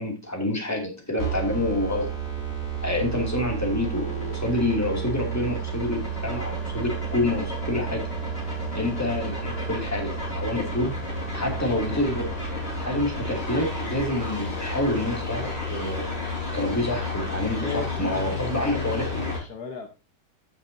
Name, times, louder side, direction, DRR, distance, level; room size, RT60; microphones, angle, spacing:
voice 1, 0.0-2.1 2.8-8.1 8.7-10.9 11.3-12.3 12.8-16.1 16.5-19.3, left 1 dB, 10° left, 1 dB, 2.6 m, -27 dB
sound 1, 1.2-19.4, right 1 dB, 35° left, 4.7 m, -31 dB
voice 2, 17.6-19.9, left 5 dB, 60° left, 4 dB, 1.8 m, -37 dB
14.0 x 6.6 x 2.7 m, 0.29 s
omnidirectional pair, 1.9 m